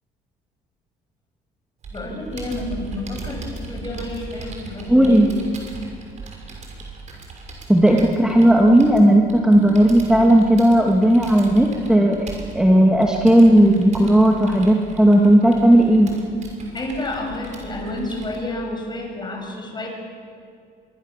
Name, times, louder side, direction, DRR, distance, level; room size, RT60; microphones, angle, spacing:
Computer keyboard, 1.8-18.4, right 3 dB, 45° right, 6.3 m, -38 dB
voice 1, 1.9-5.3 16.7-19.9, left 2 dB, 25° left, 2 dB, 6.8 m, -30 dB
voice 2, 4.9-5.3 7.7-16.1, right 1 dB, 5° right, 1 dB, 2.1 m, -14 dB
25.0 x 22.0 x 7.4 m, 2.4 s
cardioid pair, 110°, 17 cm